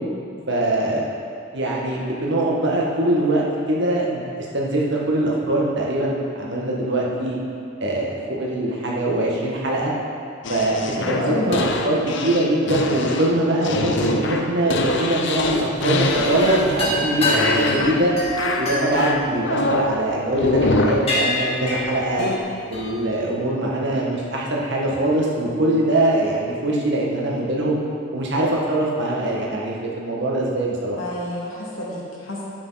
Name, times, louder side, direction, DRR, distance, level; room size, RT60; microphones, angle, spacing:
voice 1, 0.5-1.1 1.5-7.4 7.8-9.9 10.5-10.8 11.1-18.1 18.6-22.3 22.7-27.8 28.1-31.0, right 1 dB, 60° right, -3 dB, 1.8 m, -22 dB
sound 1, 10.4-16.9 17.2-18.1 18.4-20.0 20.4-21.1 22.2-22.4, left 2 dB, 65° left, 0.8 m, -24 dB
voice 2, 11.0-11.5 31.0-32.5, left 1 dB, 80° left, -4 dB, 2.4 m, -28 dB
sound 2, 16.3-20.1 20.6-20.8 21.1-23.0, left 1 dB, 30° left, 2.1 m, -26 dB
12.0 x 8.8 x 4.2 m, 2.4 s
head